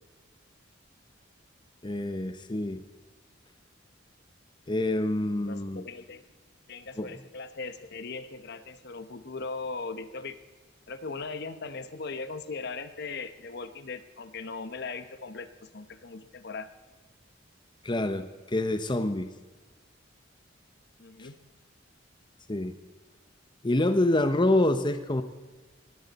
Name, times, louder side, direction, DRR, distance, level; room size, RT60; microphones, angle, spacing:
voice 1, 1.8-2.8 4.7-5.8 7.0-7.1 17.8-19.3 21.2-21.3 22.5-22.7 23.6-25.2, left 1 dB, 25° left, 9 dB, 0.8 m, -26 dB
voice 2, 5.5-6.2 6.7-10.4 10.9-16.7 21.0-21.4, left 4 dB, 60° left, 11 dB, 1.0 m, -39 dB
19.5 x 15.0 x 4.2 m, 1.3 s
head